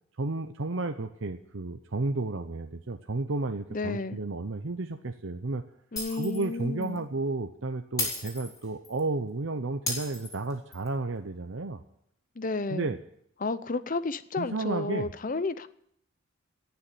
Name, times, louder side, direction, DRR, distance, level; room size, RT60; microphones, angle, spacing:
voice 1, 0.2-5.6 6.1-11.8 12.7-13.0 14.4-15.1, right 3 dB, 65° right, 6 dB, 0.8 m, -32 dB
voice 2, 3.7-4.2 5.9-7.0 12.4-12.9 13.4-15.7, left 3 dB, 40° left, 14 dB, 0.7 m, -32 dB
Shatter, 6.0-6.5 6.8-7.0 8.0-9.0 9.9-10.9, left 2 dB, 15° left, 4.0 m, -34 dB
18.0 x 7.1 x 9.4 m, 0.72 s
head